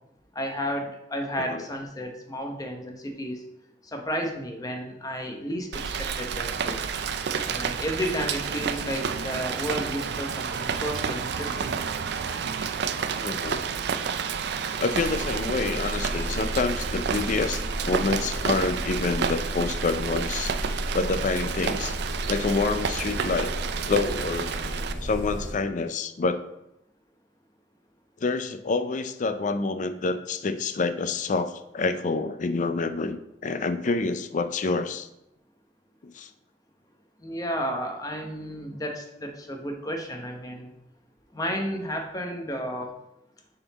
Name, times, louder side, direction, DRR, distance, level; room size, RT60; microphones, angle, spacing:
voice 1, 0.3-3.4 3.8-6.8 7.4-11.9 37.2-40.7 41.3-42.9, equal, 20° left, 3 dB, 0.8 m, -32 dB
Rain, 5.7-24.9, right 6 dB, 65° right, 0.4 m, -30 dB
voice 2, 13.2-13.6 14.8-20.5 20.9-21.9 22.3-23.5 23.9-24.6 25.0-26.4 28.2-35.1 36.0-36.3, left 3 dB, 45° left, 11 dB, 0.4 m, -27 dB
sound 1, 14.9-25.5, equal, 40° right, 2.4 m, -33 dB
6.9 x 4.0 x 4.0 m, 0.87 s
head